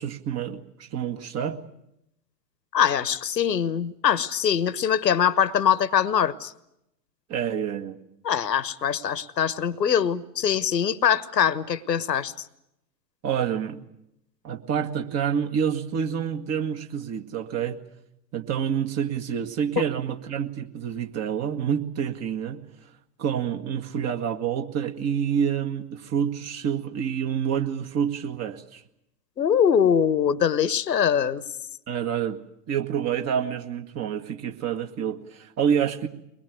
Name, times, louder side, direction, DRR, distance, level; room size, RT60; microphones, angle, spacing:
voice 1, 0.0-1.6 7.3-8.0 13.2-13.8 14.4-17.8 18.3-22.6 23.2-28.8 31.9-32.4 32.7-36.1, right 8 dB, 30° right, 2.0 m, -28 dB
voice 2, 2.7-6.5 8.2-12.3 29.4-31.4, left 8 dB, 80° left, 1.3 m, -23 dB
23.0 x 21.0 x 9.3 m
figure-of-eight pair, 100°, 50 cm